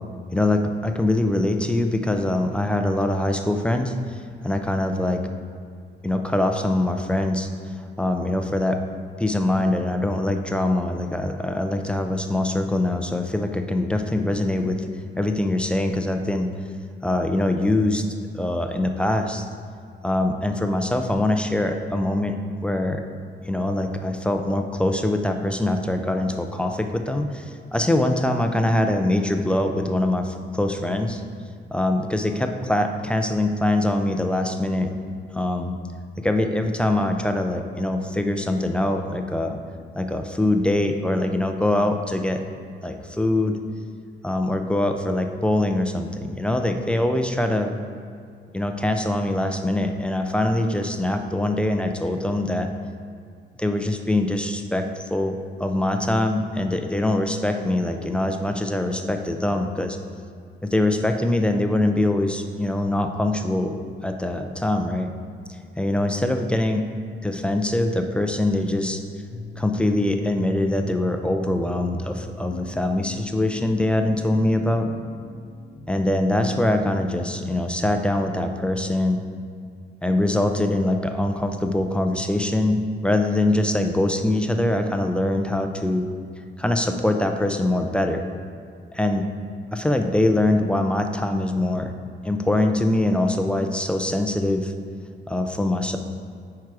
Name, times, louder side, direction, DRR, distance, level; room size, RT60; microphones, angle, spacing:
voice 1, 0.3-5.2 6.0-7.5 7.8-8.8 9.2-14.9 15.2-16.5 17.0-18.0 18.3-19.5 20.0-22.4 22.6-23.0 23.4-31.2 31.7-34.9 35.3-35.7 36.2-39.6 40.0-42.4 42.8-43.6 44.2-47.8 48.5-52.7 53.6-60.0 60.6-63.7 64.0-65.1 65.8-66.9 67.2-69.0 69.6-74.9 75.9-79.2 80.0-86.1 86.6-88.2 88.9-89.3 89.7-91.9 92.2-94.7 95.3-96.0, left 1 dB, 5° left, 5 dB, 0.3 m, -23 dB
sound 1, 69.3-78.1, left 1 dB, 45° left, 0.7 m, -40 dB
9.1 x 4.8 x 4.7 m, 2.3 s
cardioid pair, 170°, 20 cm